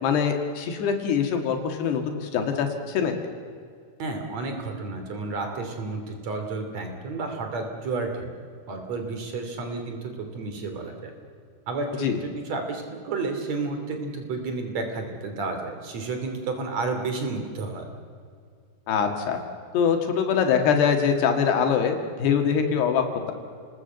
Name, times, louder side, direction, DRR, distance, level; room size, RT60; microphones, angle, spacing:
voice 1, 0.0-3.3 12.0-12.2 18.9-19.4 19.7-23.3, left 7 dB, 85° left, 4 dB, 4.0 m, -23 dB
voice 2, 4.0-8.3 8.7-10.0 10.3-11.1 11.7-17.9, right 3 dB, 45° right, 5 dB, 3.9 m, -31 dB
29.5 x 20.0 x 8.0 m, 2.2 s
omnidirectional pair, 4.6 m